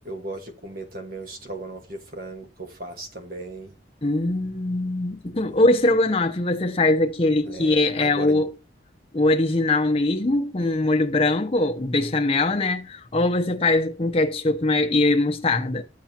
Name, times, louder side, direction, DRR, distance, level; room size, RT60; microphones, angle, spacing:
voice 1, 0.0-3.7 7.4-8.5, right 2 dB, 55° right, 1.5 m, -36 dB
voice 2, 4.0-8.5 9.1-15.8, left 2 dB, 35° left, 0.7 m, -22 dB
12.0 x 7.2 x 2.8 m
head